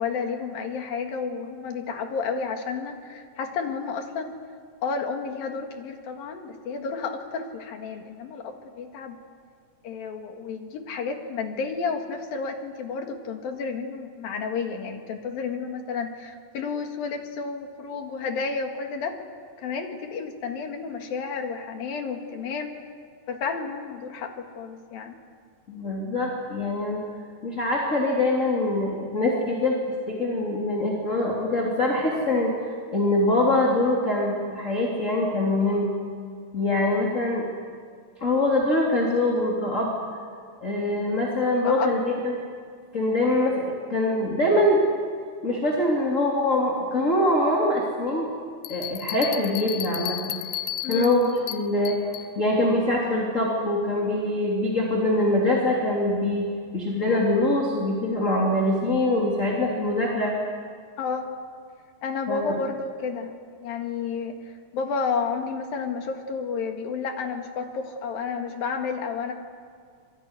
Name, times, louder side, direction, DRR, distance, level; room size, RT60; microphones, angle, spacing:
voice 1, 0.0-4.4 4.8-9.2 9.8-19.2 19.6-22.7 23.3-25.1 41.6-41.9 50.8-51.1 61.0-61.3 62.0-63.3 63.6-64.3 64.7-69.3, left 5 dB, 60° left, 4 dB, 3.4 m, -31 dB
voice 2, 25.7-27.0 27.4-29.7 30.1-32.5 32.9-35.9 36.5-37.5 38.2-39.9 40.6-42.3 42.9-44.8 45.4-48.3 48.7-50.3 50.9-52.0 52.3-56.5 56.7-60.3 62.3-62.5, left 1 dB, 20° left, -2 dB, 3.0 m, -23 dB
sound 1, 48.6-52.3, left 12 dB, 80° left, 3.1 m, -33 dB
27.0 x 21.5 x 9.9 m, 2.1 s
omnidirectional pair, 5.0 m